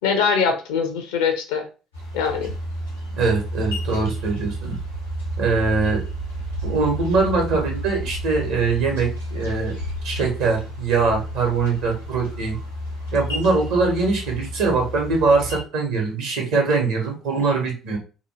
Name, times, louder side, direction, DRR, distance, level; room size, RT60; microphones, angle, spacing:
voice 1, 0.0-1.7 2.1-2.5, left 6 dB, 65° left, 5 dB, 0.5 m, -22 dB
sound 1, 1.9-15.6, equal, 90° left, 1.0 m, -31 dB
voice 2, 3.2-4.8 5.4-6.0 6.6-9.7 10.0-12.6 13.1-18.0, right 4 dB, 60° right, 1 dB, 0.9 m, -22 dB
2.9 x 2.2 x 3.0 m, 0.33 s
figure-of-eight pair, 50°, 0 cm